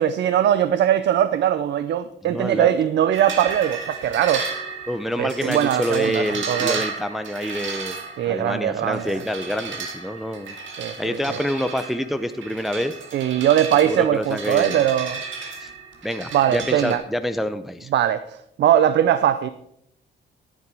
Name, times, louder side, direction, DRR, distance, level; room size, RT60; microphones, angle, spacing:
voice 1, 0.0-4.5 5.2-6.8 8.2-9.2 10.8-11.4 13.1-15.2 16.3-17.0 17.9-19.5, right 10 dB, 65° right, 14 dB, 0.5 m, -21 dB
voice 2, 2.2-2.7 4.9-8.0 8.2-10.5 11.0-12.9 13.8-14.8 15.6-15.7 16.0-17.9, equal, ahead, 9 dB, 0.6 m, -27 dB
sound 1, 3.1-17.0, right 5 dB, 80° right, 1.9 m, -33 dB
13.5 x 7.4 x 4.8 m, 0.76 s
cardioid pair, 90°, 20 cm